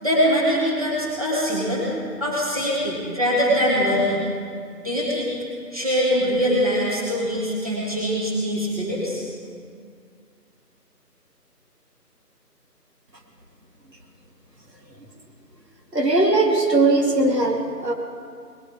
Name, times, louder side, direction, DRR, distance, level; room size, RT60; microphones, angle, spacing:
voice 1, 0.0-1.9 2.2-4.2 4.8-5.4 5.7-9.3, equal, 20° right, -6 dB, 1.9 m, -23 dB
voice 2, 15.9-17.9, right 2 dB, 80° right, 1 dB, 2.5 m, -19 dB
20.0 x 13.0 x 5.0 m, 2.2 s
figure-of-eight pair, 180°, 49 cm